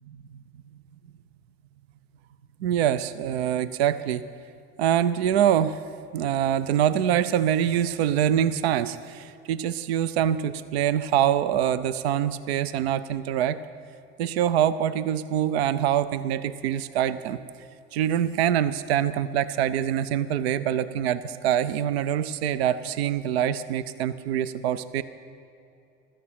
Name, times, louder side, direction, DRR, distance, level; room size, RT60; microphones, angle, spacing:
voice 1, 2.6-4.3 4.8-5.8 6.1-13.6 14.2-17.4 17.9-25.0, right 10 dB, 80° right, 15 dB, 0.6 m, -24 dB
16.0 x 12.5 x 5.8 m, 2.7 s
hypercardioid pair, 80°, 31 cm